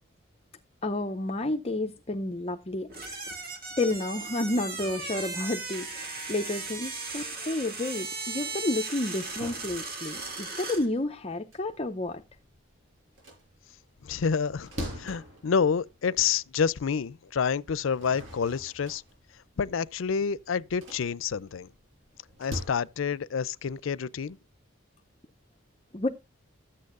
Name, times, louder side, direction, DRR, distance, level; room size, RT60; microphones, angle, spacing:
voice 1, 0.8-3.5 3.8-12.2 25.9-26.1, left 2 dB, 30° left, 0.6 m, -31 dB
sound 1, 2.9-10.9, right 3 dB, 50° right, 1.9 m, -37 dB
sound 2, 9.2-12.6 13.0-16.5 17.0-17.1 17.7-22.6, left 1 dB, 80° right, 6.2 m, -43 dB
voice 2, 14.0-14.7 15.0-19.0 19.6-21.7 22.4-24.4, left 6 dB, 90° left, 0.5 m, -28 dB
13.5 x 8.5 x 2.5 m
head